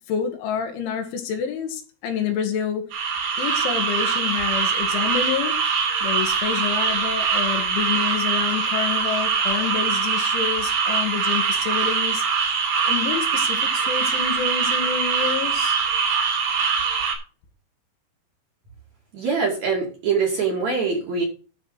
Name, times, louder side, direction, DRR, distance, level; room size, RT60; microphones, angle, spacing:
voice 1, 0.1-5.6 6.0-12.2 12.8-15.8, left 8 dB, 70° left, 5 dB, 3.9 m, -28 dB
sound 1, 2.9-17.2, right 6 dB, 70° right, 5.8 m, -23 dB
voice 2, 19.1-21.2, right 5 dB, 45° right, -1 dB, 2.9 m, -23 dB
12.5 x 4.9 x 6.5 m, 0.36 s
omnidirectional pair, 5.8 m